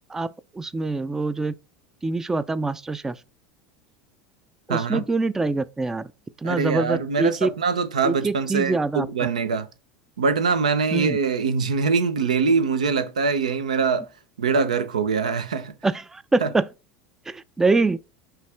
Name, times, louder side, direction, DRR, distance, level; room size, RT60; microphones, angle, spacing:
voice 1, 0.5-1.5 2.0-3.2 4.7-6.1 6.4-7.5 8.0-9.1 10.9-11.2 15.8-16.7 17.3-18.0, right 3 dB, 10° right, 0.3 m, -24 dB
voice 2, 4.7-5.0 6.4-9.7 10.2-14.1 14.4-15.7 16.4-16.5, right 5 dB, 90° right, 0.5 m, -23 dB
5.6 x 2.4 x 3.3 m
hypercardioid pair, 85°, 4 cm